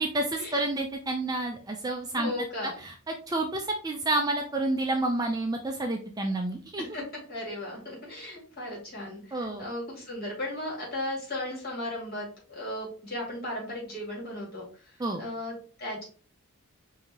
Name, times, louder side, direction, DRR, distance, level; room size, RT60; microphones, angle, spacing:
voice 1, 0.0-2.3 2.6-2.9 3.3-6.8 9.3-9.7 15.0-15.2, right 2 dB, 15° right, 3 dB, 0.4 m, -29 dB
voice 2, 2.1-2.7 6.8-7.0 7.3-14.6 15.2-16.0, left 1 dB, 45° left, -3 dB, 2.2 m, -36 dB
5.2 x 2.7 x 2.9 m, 0.40 s
head